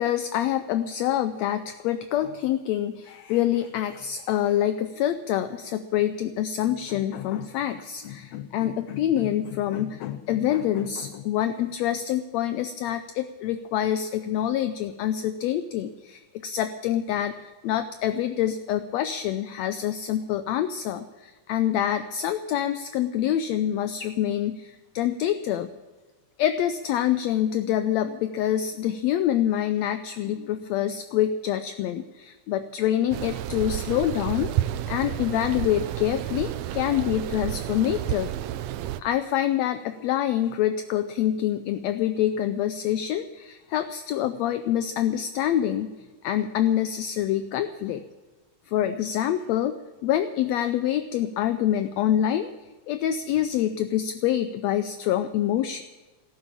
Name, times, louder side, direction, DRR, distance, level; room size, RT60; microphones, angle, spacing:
voice 1, 0.0-25.7 26.4-34.5 34.9-38.3 39.0-45.9 46.2-48.0 48.7-49.7 50.0-52.5 52.9-55.8, left 11 dB, 80° left, 10 dB, 1.6 m, -26 dB
sound 1, 33.1-39.0, right 13 dB, 80° right, 1.5 m, -31 dB
13.5 x 12.5 x 7.4 m, 1.2 s
omnidirectional pair, 3.6 m